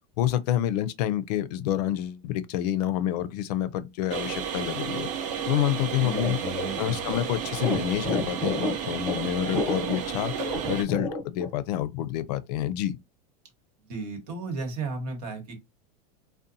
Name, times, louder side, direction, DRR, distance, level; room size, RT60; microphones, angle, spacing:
voice 1, 0.2-5.1 5.5-6.4 6.8-10.3 10.7-13.0, left 12 dB, 80° left, 0.4 m, -28 dB
kettle boiling, 4.1-10.8, right 8 dB, 40° right, 0.5 m, -32 dB
voice 2, 6.0-7.1 13.9-15.6, right 3 dB, 85° right, 1.1 m, -34 dB
sound 1, 6.1-11.5, left 2 dB, 10° left, 0.8 m, -30 dB
2.8 x 2.1 x 2.5 m
supercardioid pair, 135°, 20 cm